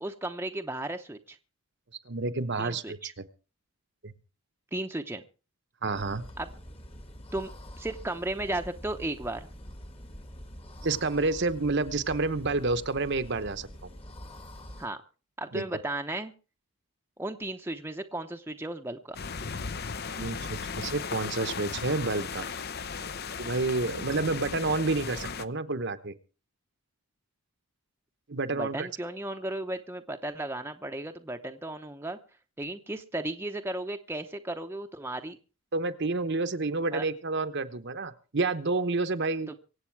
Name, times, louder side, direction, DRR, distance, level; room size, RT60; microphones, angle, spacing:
voice 1, 0.0-1.4 2.6-3.1 4.7-5.2 6.4-6.5 7.3-7.5 7.8-9.5 14.8-15.0 15.4-16.3 17.2-19.2 23.9-24.0 28.5-32.2 32.6-35.4 36.9-37.0 39.5-39.6, right 1 dB, 10° right, 5 dB, 0.8 m, -35 dB
voice 2, 2.0-3.2 4.0-4.1 5.8-6.2 10.8-13.7 15.5-15.6 20.2-22.4 23.4-26.1 28.3-28.9 35.7-39.5, right 3 dB, 50° right, 10 dB, 1.0 m, -29 dB
sound 1, 5.9-14.9, equal, 25° left, 1.5 m, -45 dB
sound 2, 19.1-25.5, left 5 dB, 45° left, 0.7 m, -36 dB
24.5 x 8.2 x 4.7 m, 0.35 s
head